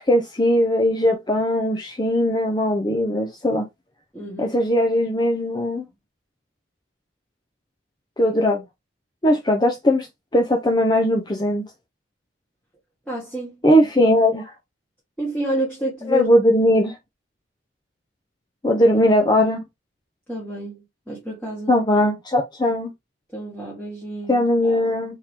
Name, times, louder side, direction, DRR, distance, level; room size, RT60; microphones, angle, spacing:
voice 1, 0.0-3.6 4.4-5.8 8.2-8.6 9.2-10.1 10.3-11.7 13.6-14.5 16.1-17.0 18.6-19.6 21.7-22.9 24.3-25.2, left 1 dB, 20° left, 0.6 m, -19 dB
voice 2, 4.1-4.6 13.1-13.6 15.2-16.3 20.3-21.7 23.3-25.0, right 2 dB, 5° left, 1.6 m, -29 dB
4.5 x 3.7 x 2.9 m
head